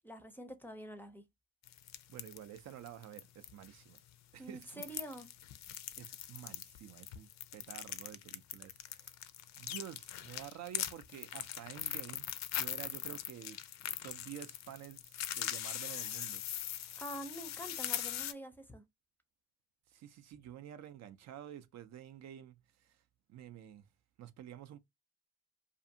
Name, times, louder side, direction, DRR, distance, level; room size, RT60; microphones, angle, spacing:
voice 1, 0.0-1.2 4.4-5.3 17.0-18.8, right 1 dB, 5° left, 0.5 m, -46 dB
sound 1, 1.6-3.7 3.9-4.0 4.6-18.3, left 11 dB, 65° left, 0.4 m, -41 dB
voice 2, 2.1-4.0 4.3-4.8 6.0-9.1 9.6-13.6 14.0-16.4 19.9-23.0 23.3-23.9 24.2-24.8, right 11 dB, 60° right, 0.4 m, -50 dB
2.5 x 2.5 x 2.6 m
cardioid pair, 90°, 30 cm